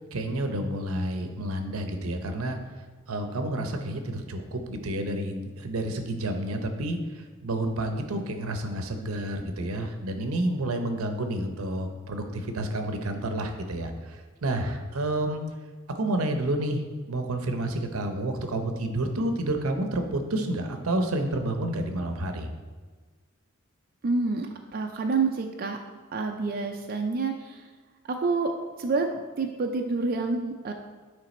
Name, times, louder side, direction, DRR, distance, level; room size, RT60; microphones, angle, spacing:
voice 1, 0.1-2.6 3.1-7.0 7.4-14.2 14.4-15.4 15.9-22.5, right 1 dB, 80° right, 6 dB, 0.7 m, -29 dB
voice 2, 24.0-25.8 26.1-27.7 28.1-30.7, right 3 dB, 45° right, 3 dB, 0.4 m, -28 dB
9.0 x 3.3 x 4.2 m, 1.4 s
head